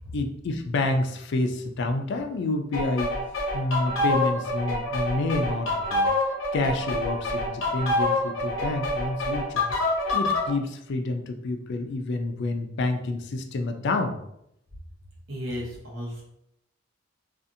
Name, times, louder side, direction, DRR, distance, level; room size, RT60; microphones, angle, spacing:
voice 1, 0.1-3.2 3.5-6.1 6.5-9.7 10.1-14.2, left 2 dB, 60° left, 6 dB, 0.4 m, -28 dB
sound 1, 2.7-10.5, left 2 dB, 85° left, 0.7 m, -27 dB
voice 2, 15.3-16.2, equal, 75° right, -3 dB, 1.0 m, -34 dB
2.6 x 2.4 x 2.5 m, 0.77 s
head